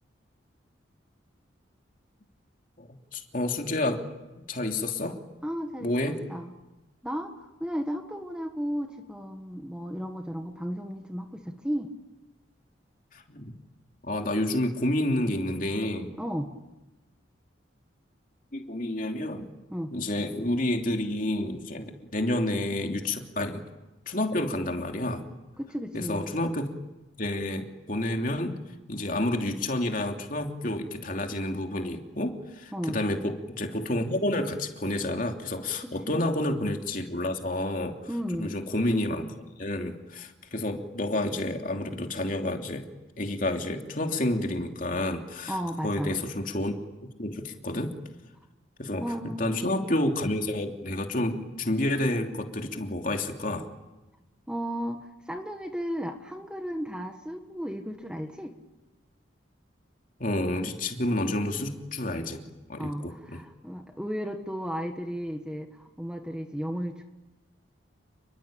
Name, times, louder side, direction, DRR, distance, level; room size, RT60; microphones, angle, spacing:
voice 1, 2.8-4.1 4.5-5.2 5.8-6.2 13.1-13.6 14.0-16.1 18.5-19.5 19.9-23.6 24.1-25.3 25.9-26.7 27.2-28.6 28.9-38.0 38.4-39.3 39.6-42.9 43.2-45.6 45.8-46.8 47.2-47.9 48.8-49.0 49.4-53.7 60.2-63.4, left 1 dB, 45° left, 3 dB, 3.0 m, -29 dB
voice 2, 5.4-6.5 7.0-11.9 16.2-16.5 19.7-19.9 25.6-26.3 32.7-33.1 35.8-36.2 38.1-38.5 45.5-46.1 49.0-49.7 54.5-58.6 62.8-67.0, equal, 5° right, 4 dB, 1.6 m, -34 dB
29.5 x 22.5 x 8.9 m, 1.1 s
head